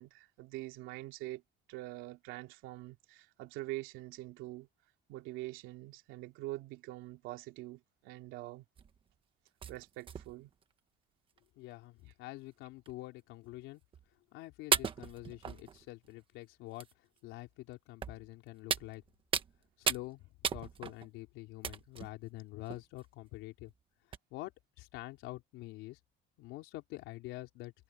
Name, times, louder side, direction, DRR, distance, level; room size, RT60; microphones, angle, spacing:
voice 1, 0.0-1.4 1.7-4.7 5.1-8.6 9.7-10.5, right 18 dB, 85° right, 2.8 m, -44 dB
sound 1, 8.8-9.0 9.6-10.6 11.4-11.5 11.7-11.8 12.9-13.0 13.9-14.0 14.7-16.1 16.8-16.9 18.0-18.3 18.7-19.6 19.9-20.1 20.4-21.1 21.6-22.1 22.7-23.0 23.7-23.8 24.1-24.2, right 7 dB, 25° right, 1.2 m, -35 dB
voice 2, 11.6-13.8 14.3-16.9 17.2-19.0 19.8-23.7 24.3-24.5 24.8-26.0 26.4-27.7, left 18 dB, 80° left, 4.0 m, -46 dB
cardioid pair, 170°, 20 cm